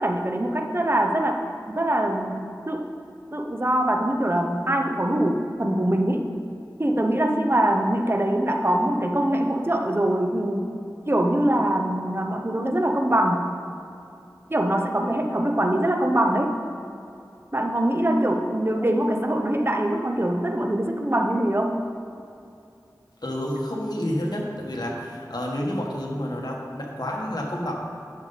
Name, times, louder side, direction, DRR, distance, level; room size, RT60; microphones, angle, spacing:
voice 1, 0.0-2.8 3.3-6.3 6.8-10.7 11.1-13.4 14.5-16.5 17.5-21.8, right 1 dB, 30° right, 3 dB, 0.8 m, -23 dB
voice 2, 23.2-27.7, left 1 dB, 65° left, -1 dB, 1.5 m, -29 dB
10.0 x 6.7 x 4.1 m, 2.6 s
wide cardioid pair, 45°, 7 cm